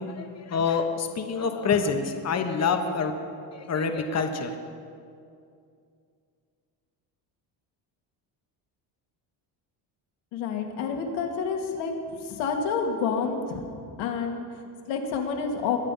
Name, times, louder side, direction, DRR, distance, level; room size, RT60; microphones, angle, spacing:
voice 1, 0.0-3.1 3.5-4.5, left 5 dB, 35° left, 6 dB, 1.4 m, -27 dB
voice 2, 10.3-13.6 14.0-15.8, left 5 dB, 80° left, 2 dB, 2.2 m, -29 dB
22.0 x 8.8 x 5.6 m, 2.4 s
cardioid pair, 125°, 45 cm